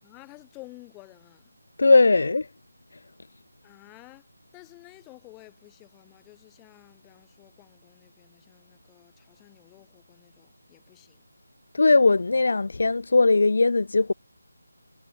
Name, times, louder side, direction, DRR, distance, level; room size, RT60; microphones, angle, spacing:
voice 1, 0.0-1.6 3.6-4.3 4.5-11.2, left 25 dB, 10° left, 4.8 m, -51 dB
voice 2, 1.8-2.5 11.7-14.1, left 3 dB, 60° left, 0.5 m, -19 dB
figure-of-eight pair, 165°, 0 cm